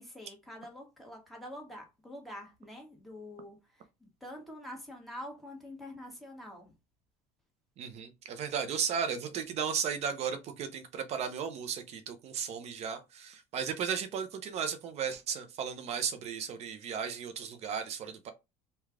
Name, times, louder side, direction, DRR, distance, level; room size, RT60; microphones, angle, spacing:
voice 1, 0.0-6.7, left 1 dB, ahead, 1.2 m, -46 dB
voice 2, 7.8-18.3, right 7 dB, 45° right, 0.6 m, -35 dB
3.2 x 2.3 x 3.5 m
cardioid pair, 135°, 15 cm